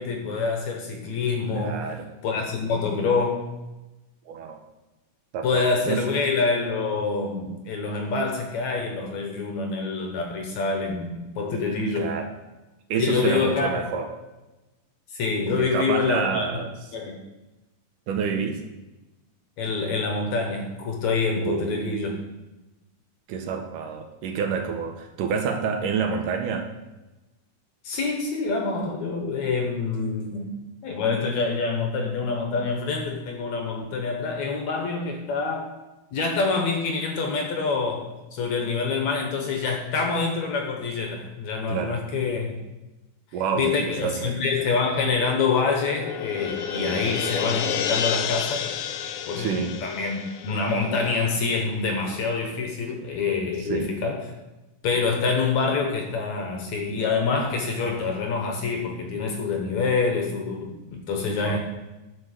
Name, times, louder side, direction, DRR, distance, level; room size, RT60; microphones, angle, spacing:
voice 1, 0.0-1.8 2.2-3.5 5.4-12.1 13.0-13.8 15.1-16.5 16.9-17.1 19.6-22.1 27.8-35.7 36.1-42.5 43.6-48.7 49.3-54.2 54.8-61.6, left 4 dB, 65° left, 2 dB, 2.1 m, -26 dB
voice 2, 1.5-2.1 4.3-4.6 5.3-6.2 12.0-12.3 12.9-14.1 15.6-16.7 18.1-18.6 21.4-22.0 23.3-26.7 41.7-42.0 43.3-44.3 46.8-47.1 49.4-49.8 53.6-53.9 61.4-61.6, right 6 dB, 70° right, 4 dB, 2.4 m, -28 dB
sound 1, 45.0-51.6, left 8 dB, 80° left, 1.9 m, -31 dB
10.5 x 6.1 x 6.5 m, 1.1 s
omnidirectional pair, 4.1 m